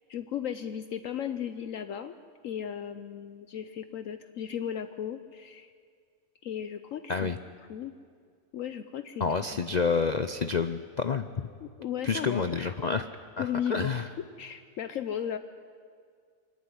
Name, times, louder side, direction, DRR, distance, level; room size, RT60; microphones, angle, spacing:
voice 1, 0.1-2.1 2.4-5.7 6.4-7.3 7.7-7.9 8.5-9.6 11.6-12.7 13.4-14.1 14.4-15.4, left 9 dB, 70° left, 10 dB, 1.1 m, -36 dB
voice 2, 9.2-11.5 12.0-13.1 13.4-14.1, left 5 dB, 50° left, 9 dB, 0.5 m, -28 dB
23.0 x 14.5 x 9.8 m, 2.1 s
omnidirectional pair, 1.5 m